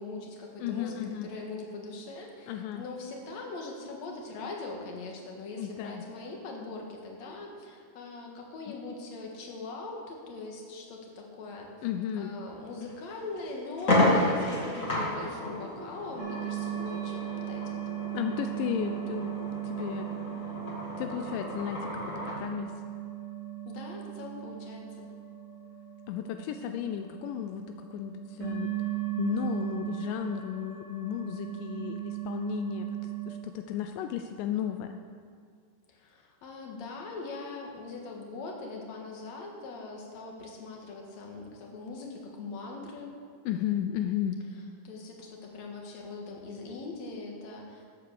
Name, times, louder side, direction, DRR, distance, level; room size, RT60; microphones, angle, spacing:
voice 1, 0.0-11.7 12.2-17.2 17.5-17.8 23.7-25.1 35.9-43.2 44.8-47.9, left 3 dB, 55° left, 0 dB, 2.5 m, -41 dB
voice 2, 0.6-1.3 2.5-2.8 5.6-6.0 8.7-8.8 11.8-12.3 18.1-20.3 20.9-22.8 26.1-28.8 29.2-35.0 43.5-44.4, left 10 dB, 85° left, 6 dB, 1.9 m, -34 dB
sound 1, 12.8-12.9 13.4-13.5 13.8-22.4, left 1 dB, 30° left, 1.6 m, -31 dB
sound 2, 16.2-33.3, right 14 dB, 75° right, 4.6 m, -37 dB
13.0 x 8.2 x 6.7 m, 2.1 s
omnidirectional pair, 4.4 m